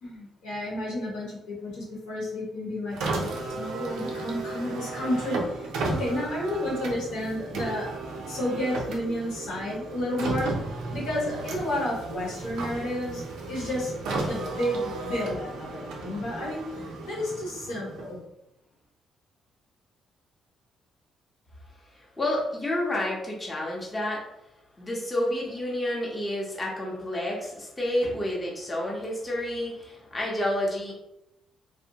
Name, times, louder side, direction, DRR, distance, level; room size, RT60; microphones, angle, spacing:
voice 1, 0.0-7.9 8.3-18.2, left 1 dB, 85° left, -5 dB, 1.2 m, -31 dB
Car, 2.9-18.3, right 2 dB, 90° right, 0.5 m, -34 dB
voice 2, 22.0-24.2 24.8-30.9, left 1 dB, 20° left, -3 dB, 0.7 m, -29 dB
2.6 x 2.0 x 2.7 m, 0.85 s
cardioid pair, 90°, 0 cm